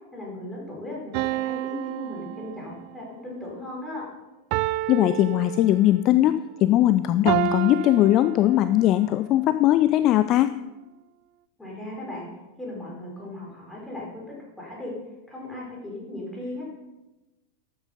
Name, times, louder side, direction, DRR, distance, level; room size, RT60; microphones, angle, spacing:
voice 1, 0.1-4.1 11.6-14.9 15.3-16.6, left 1 dB, 5° left, -4 dB, 4.9 m, -37 dB
sound 1, 1.1-3.0 4.5-6.1 7.3-9.0, right 15 dB, 45° right, 0.3 m, -30 dB
voice 2, 4.9-10.5, left 13 dB, 35° left, 12 dB, 0.4 m, -20 dB
12.5 x 8.5 x 5.4 m, 1.0 s
figure-of-eight pair, 90°, 0 cm